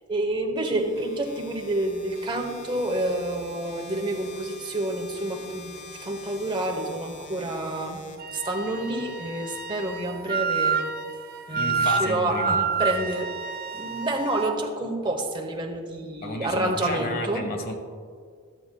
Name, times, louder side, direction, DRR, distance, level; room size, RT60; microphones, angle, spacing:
voice 1, 0.1-8.0 8.3-10.8 11.5-13.3 13.7-17.5, right 1 dB, 20° right, 2 dB, 0.9 m, -28 dB
sound 1, 0.8-8.8, left 4 dB, 85° left, 1.0 m, -46 dB
Wind instrument woodwind instrument, 8.2-14.6, right 5 dB, 40° right, 0.4 m, -29 dB
voice 2, 11.5-12.7 16.2-17.7, left 2 dB, 45° left, 4 dB, 0.9 m, -32 dB
13.0 x 7.6 x 2.2 m, 2.1 s
head